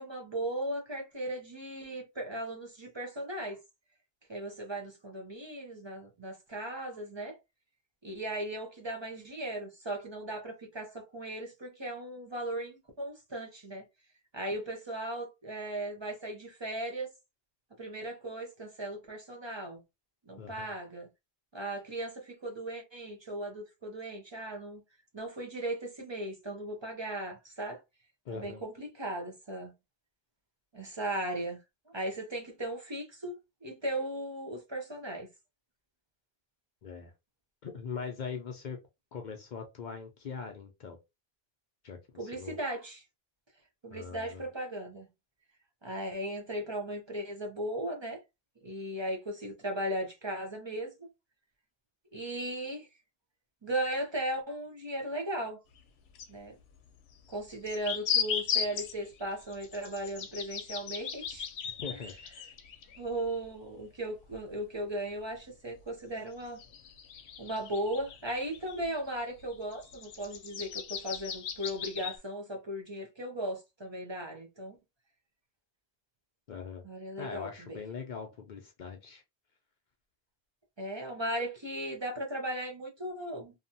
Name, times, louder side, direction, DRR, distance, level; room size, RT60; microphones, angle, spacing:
voice 1, 0.0-3.6 4.3-7.4 8.0-13.8 14.3-17.1 17.8-19.8 20.3-21.1 21.5-24.8 25.1-27.8 28.3-29.7 30.7-31.6 31.9-33.3 33.6-35.3 42.2-43.0 43.8-45.1 45.8-48.2 48.6-50.9 52.1-52.9 53.6-55.6 56.3-56.5 57.3-61.5 61.9-62.0 63.0-66.6 67.4-74.8 76.8-77.8 80.8-83.5, right 1 dB, 35° right, 0.5 m, -37 dB
voice 2, 20.4-20.7 28.3-28.6 36.8-37.1 37.6-38.8 39.1-41.0 41.8-42.6 43.9-44.5 61.6-62.1 76.5-76.8 77.2-79.2, left 6 dB, 55° left, 0.6 m, -41 dB
sound 1, 55.8-55.9 56.2-56.3 57.3-63.5 63.8-63.9 64.3-64.4 65.8-65.9 66.5-68.9 69.3-72.2, left 7 dB, 85° left, 0.8 m, -37 dB
2.7 x 2.2 x 2.6 m
omnidirectional pair, 1.0 m